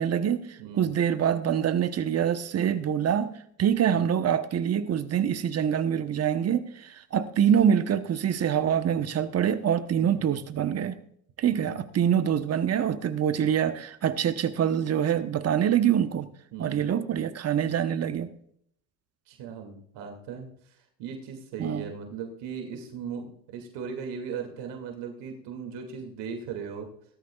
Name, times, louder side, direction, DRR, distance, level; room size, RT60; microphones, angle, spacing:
voice 1, 0.0-3.3 3.6-11.0 11.4-16.3 16.6-18.3 21.6-21.9, right 9 dB, 30° right, 11 dB, 1.0 m, -25 dB
voice 2, 0.6-0.9 3.9-4.1 7.3-7.5 10.0-10.2 11.5-11.8 16.5-16.8 19.3-26.9, right 6 dB, 55° right, 4 dB, 2.5 m, -38 dB
18.0 x 13.0 x 2.4 m, 0.66 s
hypercardioid pair, 85°, 50 cm